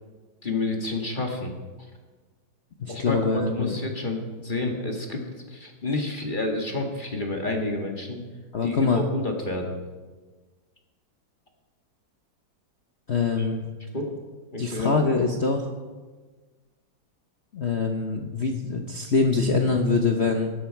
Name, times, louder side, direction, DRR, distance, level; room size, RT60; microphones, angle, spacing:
voice 1, 0.4-1.5 2.9-5.2 5.5-8.2 8.6-9.8 13.4-13.5 13.9-14.1 14.5-15.0, left 2 dB, 25° left, 2 dB, 1.6 m, -29 dB
voice 2, 2.8-3.8 8.5-9.0 13.1-13.6 14.6-15.7 17.5-20.5, left 4 dB, 45° left, 3 dB, 0.9 m, -24 dB
17.0 x 12.0 x 4.6 m, 1.4 s
omnidirectional pair, 2.1 m